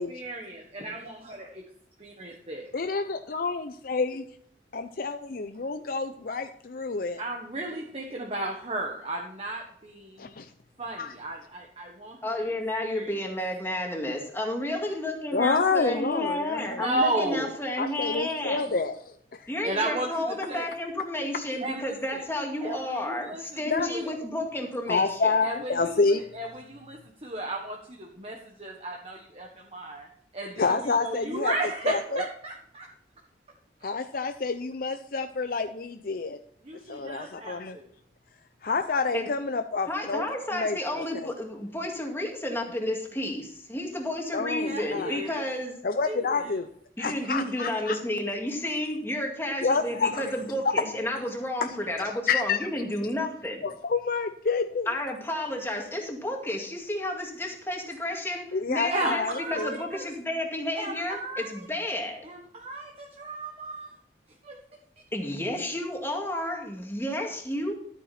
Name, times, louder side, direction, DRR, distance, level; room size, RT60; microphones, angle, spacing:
voice 1, 0.1-1.6 2.0-2.6 7.2-10.4 10.8-12.5 12.8-13.2 16.5-17.5 19.6-20.7 21.6-22.2 22.6-24.1 25.4-30.1 30.3-32.9 36.6-37.9 44.6-45.4 46.0-46.6 47.0-47.1 58.9-60.0 60.8-61.7 62.2-63.9 64.4-64.6, right 2 dB, 35° right, 0 dB, 1.4 m, -34 dB
voice 2, 2.7-4.2 4.7-7.2 10.2-10.5 11.0-11.1 15.3-16.8 17.8-18.9 19.4-19.5 23.7-23.9 24.9-26.2 30.6-31.5 31.9-32.2 33.8-36.4 36.9-37.8 38.6-40.2 40.5-41.3 44.3-45.2 45.8-46.7 47.0-47.9 49.6-50.4 51.6-51.7 52.3-52.6 53.6-54.9 58.5-59.8, left 4 dB, 55° left, 8 dB, 0.6 m, -28 dB
voice 3, 12.2-18.7 19.5-25.3 39.1-39.3 39.9-45.8 47.0-53.6 54.9-62.3 65.1-67.7, left 1 dB, 15° left, 1 dB, 2.1 m, -31 dB
13.0 x 8.9 x 4.3 m, 0.64 s
head